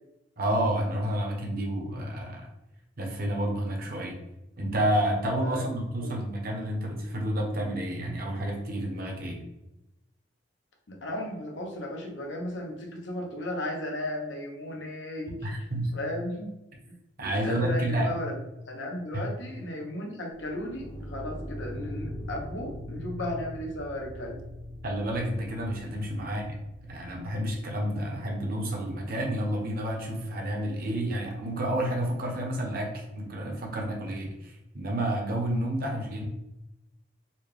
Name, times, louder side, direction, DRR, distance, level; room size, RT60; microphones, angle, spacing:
voice 1, 0.4-2.5 3.0-4.2 4.6-9.4 15.4-15.9 17.2-18.1 19.1-19.2 24.8-36.2, right 1 dB, 55° right, 1 dB, 0.9 m, -30 dB
voice 2, 5.4-5.7 6.0-6.1 10.9-15.5 15.9-16.5 16.9-24.4, left 1 dB, 85° left, 1 dB, 0.9 m, -35 dB
sound 1, 20.3-27.6, equal, 35° left, 0.7 m, -41 dB
4.2 x 2.3 x 3.3 m, 0.92 s
head